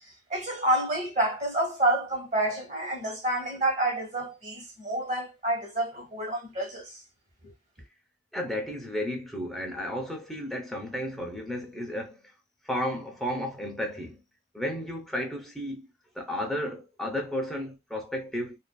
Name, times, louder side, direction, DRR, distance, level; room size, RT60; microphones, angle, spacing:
voice 1, 0.3-6.9 7.4-7.5, right 1 dB, 40° right, 1.2 m, -28 dB
voice 2, 8.3-12.2 12.6-14.2 14.5-15.9 16.2-18.6, equal, ahead, 0.6 m, -33 dB
2.5 x 2.3 x 2.2 m
head